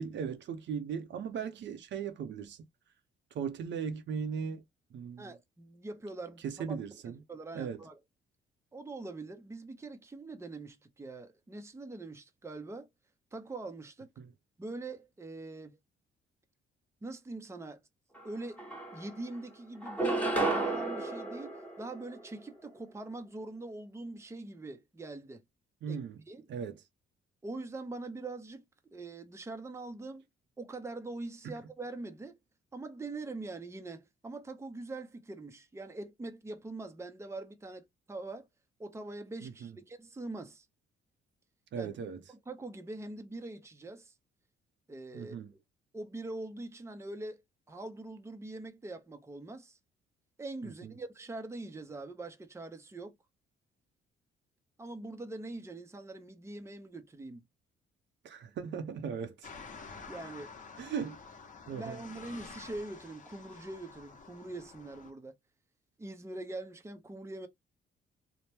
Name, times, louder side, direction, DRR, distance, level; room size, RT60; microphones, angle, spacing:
voice 1, 0.0-2.6 3.3-4.6 4.9-5.3 6.4-7.2 7.5-7.8 14.2-14.3 25.8-26.2 26.5-26.8 31.4-31.5 39.4-39.7 41.7-42.2 45.1-45.5 50.6-50.9 58.2-59.5 60.8-61.2 61.7-62.0, right 6 dB, 65° right, 0.7 m, -38 dB
voice 2, 5.2-6.8 7.0-8.0 8.7-12.9 13.3-14.1 14.6-15.8 17.0-17.8 18.2-18.7 18.9-25.4 25.9-26.5 27.4-28.6 28.9-30.2 30.6-32.4 32.7-38.5 38.8-40.7 41.8-42.0 42.3-44.1 44.9-45.4 45.9-47.4 47.7-49.8 50.4-53.1 54.8-57.4 60.1-60.5 61.7-65.3 66.0-67.5, right 2 dB, 15° right, 0.6 m, -43 dB
sound 1, 18.2-18.3 18.6-19.4 19.8-22.4, right 2 dB, 5° left, 1.1 m, -33 dB
sound 2, 59.4-65.1, left 4 dB, 40° left, 0.8 m, -49 dB
2.8 x 2.1 x 3.3 m
cardioid pair, 90°, 20 cm